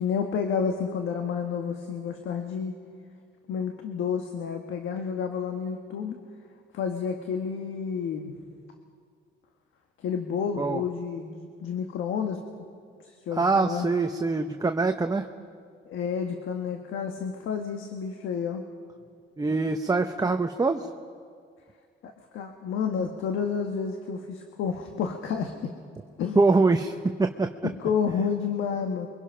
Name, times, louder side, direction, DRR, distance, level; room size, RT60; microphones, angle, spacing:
voice 1, 0.0-2.8 3.5-6.2 6.7-8.3 10.0-12.4 13.0-13.9 15.9-18.6 22.0-25.7 26.2-26.4 27.8-29.1, left 6 dB, 80° left, 4 dB, 1.4 m, -30 dB
voice 2, 13.3-15.3 19.4-20.9 26.4-27.7, right 3 dB, 20° right, 5 dB, 0.9 m, -24 dB
28.5 x 23.5 x 5.7 m, 2.2 s
cardioid pair, 90°, 20 cm